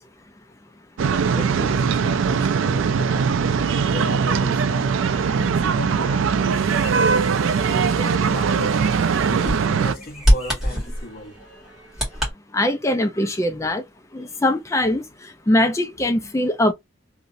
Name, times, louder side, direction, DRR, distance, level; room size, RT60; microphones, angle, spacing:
sound 1, 1.0-9.9, right 6 dB, 75° right, 0.4 m, -21 dB
voice 1, 1.4-3.4 3.9-5.0 5.4-6.5 7.4-8.8 9.3-11.4 14.2-14.4, left 1 dB, 45° left, 0.9 m, -35 dB
Bird vocalization bird call bird song, 6.3-12.3, equal, ahead, 1.8 m, -27 dB
voice 2, 12.5-13.8 14.1-15.0 15.5-16.7, left 1 dB, 15° left, 0.3 m, -21 dB
2.9 x 2.6 x 2.6 m
head